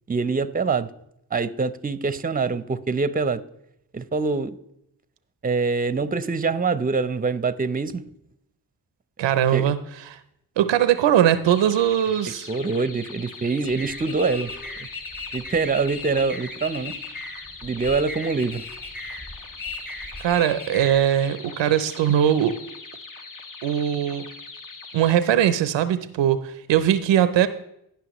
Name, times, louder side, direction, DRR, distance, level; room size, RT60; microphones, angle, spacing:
voice 1, 0.1-0.9 1.3-3.4 3.9-4.6 5.4-8.0 9.5-9.7 12.5-14.5 14.8-14.9 15.3-17.0 17.6-18.6, right 4 dB, 20° right, 14 dB, 0.6 m, -24 dB
voice 2, 9.2-9.8 10.1-10.2 10.6-12.5 20.2-22.6 23.6-24.3 24.9-27.5, right 10 dB, 90° right, 13 dB, 0.6 m, -20 dB
fast whistlers, 11.4-25.2, left 3 dB, 45° left, 1.1 m, -42 dB
sound 1, 13.6-21.0, left 3 dB, 25° left, 1.9 m, -37 dB
17.0 x 5.6 x 3.0 m, 0.78 s
cardioid pair, 45°, 43 cm